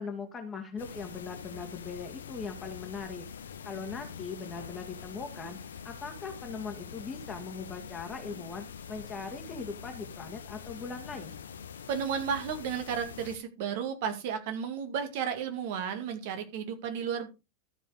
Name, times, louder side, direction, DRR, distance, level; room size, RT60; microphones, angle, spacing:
voice 1, 0.0-11.4, left 5 dB, 20° left, 3 dB, 1.8 m, -40 dB
sound 1, 0.8-13.4, left 7 dB, 65° left, 1.0 m, -44 dB
voice 2, 11.9-17.3, right 7 dB, 50° right, 7 dB, 2.2 m, -33 dB
13.5 x 5.4 x 5.0 m, 0.28 s
figure-of-eight pair, 90°, 0 cm